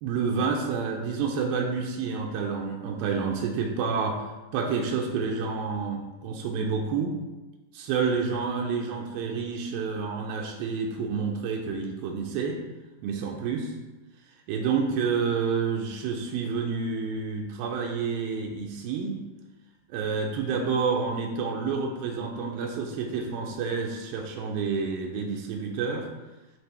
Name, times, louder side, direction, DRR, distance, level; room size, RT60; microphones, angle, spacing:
voice 1, 0.0-4.3 4.5-7.2 7.7-12.6 13.0-13.7 14.5-19.2 19.9-26.1, right 5 dB, 85° right, 1 dB, 2.5 m, -29 dB
11.0 x 4.3 x 3.4 m, 1.1 s
omnidirectional pair, 4.3 m